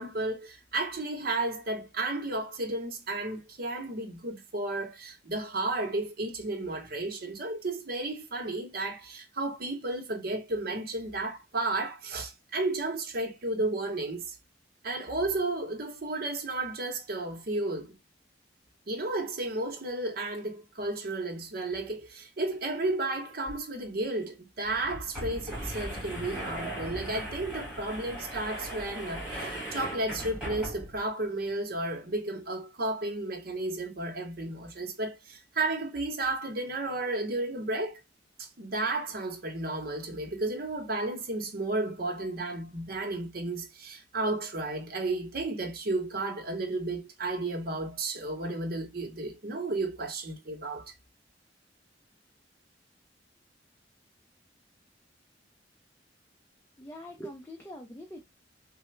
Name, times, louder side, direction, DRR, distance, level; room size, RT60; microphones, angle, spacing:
voice 1, 0.0-14.4 14.8-18.0 18.9-38.0 38.4-50.9, right 2 dB, 55° right, 0.8 m, -33 dB
sound 1, 23.4-23.5 23.8-23.9 24.6-31.1, equal, 5° right, 1.5 m, -38 dB
voice 2, 56.8-58.2, equal, 10° left, 0.5 m, -43 dB
3.3 x 2.1 x 3.1 m
head